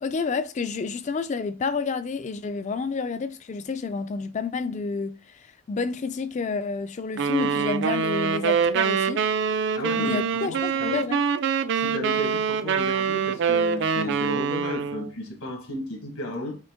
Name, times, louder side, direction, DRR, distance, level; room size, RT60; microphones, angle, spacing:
voice 1, 0.0-9.2 10.0-11.2, left 4 dB, 30° left, 0.3 m, -29 dB
sound 1, 7.2-15.1, right 6 dB, 55° right, 0.3 m, -25 dB
voice 2, 9.7-11.0 11.7-16.6, left 1 dB, 80° left, 1.4 m, -33 dB
5.1 x 2.8 x 3.6 m
head